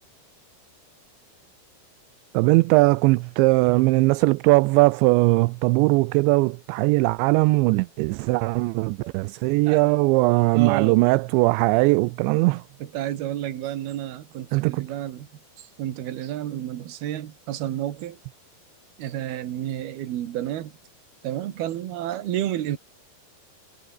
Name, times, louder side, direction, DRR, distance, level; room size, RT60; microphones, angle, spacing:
voice 1, 2.3-12.6 14.5-14.9, right 24 dB, 85° right, 2.8 m, -20 dB
voice 2, 10.5-11.0 12.8-15.3 15.6-18.2 19.0-20.8 21.2-22.8, right 12 dB, 65° right, 3.4 m, -30 dB
omnidirectional pair, 5.3 m